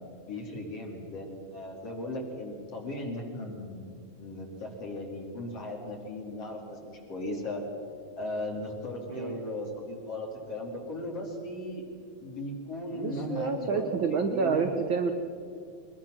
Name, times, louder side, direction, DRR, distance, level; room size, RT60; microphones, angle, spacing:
voice 1, 0.0-7.6 8.2-11.8 12.2-14.8, left 1 dB, 50° left, -1 dB, 3.6 m, -37 dB
voice 2, 12.9-15.1, right 5 dB, 75° right, 6 dB, 1.1 m, -29 dB
22.5 x 21.0 x 6.3 m, 2.4 s
omnidirectional pair, 3.6 m